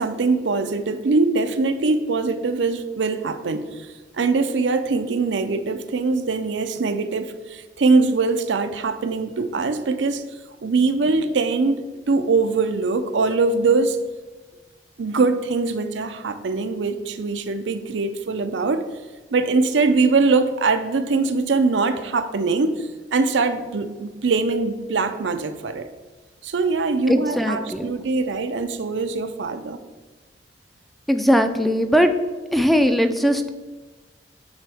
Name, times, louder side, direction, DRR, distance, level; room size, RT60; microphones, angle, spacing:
voice 1, 0.0-3.7 4.2-10.2 10.6-14.0 15.0-18.8 19.3-25.9 26.4-29.8, right 3 dB, 85° right, 0.5 m, -22 dB
voice 2, 27.1-27.9 31.1-32.1 32.5-33.5, equal, ahead, 0.4 m, -19 dB
8.9 x 4.6 x 3.4 m
head